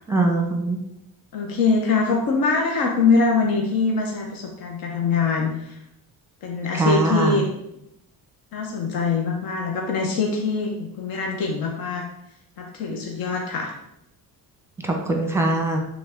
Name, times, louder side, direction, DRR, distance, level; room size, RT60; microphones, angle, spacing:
voice 1, 0.1-0.8 6.7-7.4 14.8-15.8, right 2 dB, 5° right, 2 dB, 0.9 m, -22 dB
voice 2, 1.3-5.8 6.4-7.5 8.5-12.0 12.6-13.7, left 4 dB, 65° left, 0 dB, 1.2 m, -23 dB
10.5 x 3.9 x 3.7 m, 0.81 s
cardioid pair, 175°, 38 cm